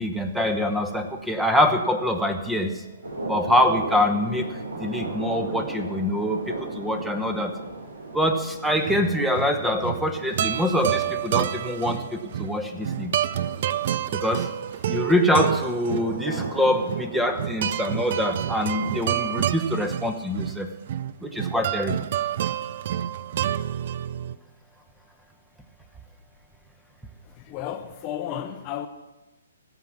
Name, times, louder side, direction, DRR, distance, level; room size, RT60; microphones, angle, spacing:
voice 1, 0.0-2.8 3.3-7.5 8.1-13.1 14.1-14.5 14.9-20.7 21.2-22.0, left 1 dB, ahead, 1.0 m, -24 dB
sound 1, 3.0-19.4, right 2 dB, 85° right, 3.4 m, -37 dB
sound 2, 8.7-24.4, right 11 dB, 50° right, 0.4 m, -29 dB
voice 2, 27.4-28.9, left 10 dB, 30° left, 0.7 m, -33 dB
16.0 x 6.0 x 7.3 m
figure-of-eight pair, 130°, 0 cm